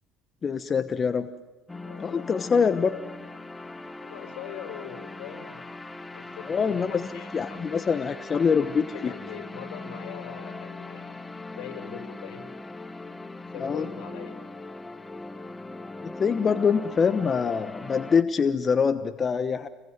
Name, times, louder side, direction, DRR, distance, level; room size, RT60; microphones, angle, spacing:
voice 1, 0.4-1.3 2.0-2.9 6.5-7.1 7.3-9.1 13.6-13.9 16.0-19.7, left 6 dB, 30° left, 10 dB, 1.1 m, -24 dB
voice 2, 1.7-2.3 4.0-5.7 6.1-8.0 8.6-11.1 11.5-12.5 13.5-14.4, left 10 dB, 80° left, 6 dB, 5.6 m, -42 dB
sound 1, 1.7-18.2, left 2 dB, 15° left, 1.2 m, -40 dB
29.0 x 22.0 x 9.5 m, 1.2 s
supercardioid pair, 110°, 0 cm